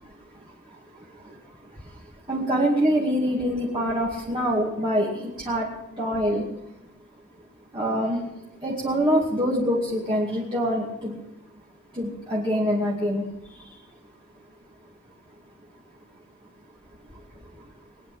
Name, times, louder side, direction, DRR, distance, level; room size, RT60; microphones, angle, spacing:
voice 1, 2.3-5.1 5.4-5.7 6.0-6.4 7.7-8.2 8.6-11.2 12.0-13.2, equal, 25° right, -6 dB, 2.5 m, -24 dB
22.5 x 9.9 x 6.1 m, 0.86 s
head